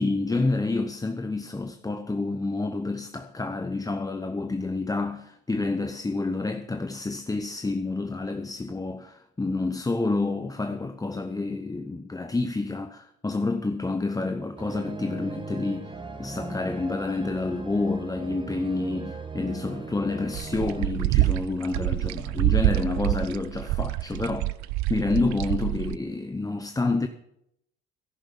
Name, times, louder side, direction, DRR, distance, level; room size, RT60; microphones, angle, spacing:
voice 1, 0.0-15.9 16.2-24.5 24.9-27.1, left 3 dB, 10° left, 0.8 m, -29 dB
sound 1, 14.6-20.9, right 3 dB, 15° right, 1.9 m, -38 dB
sound 2, 20.3-26.0, right 18 dB, 65° right, 0.6 m, -26 dB
11.0 x 10.5 x 7.2 m
supercardioid pair, 80°, 30 cm